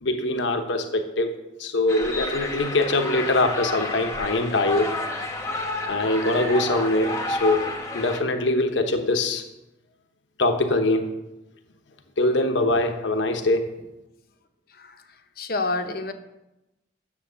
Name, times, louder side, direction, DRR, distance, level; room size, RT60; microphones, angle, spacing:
voice 1, 0.0-5.0 5.9-9.4 10.4-11.1 12.2-13.7, left 2 dB, 80° left, 6 dB, 1.0 m, -23 dB
sound 1, 1.9-8.2, left 2 dB, 15° left, 1.1 m, -30 dB
voice 2, 15.4-16.1, left 3 dB, 50° left, 7 dB, 0.9 m, -28 dB
10.0 x 7.4 x 6.8 m, 0.97 s
head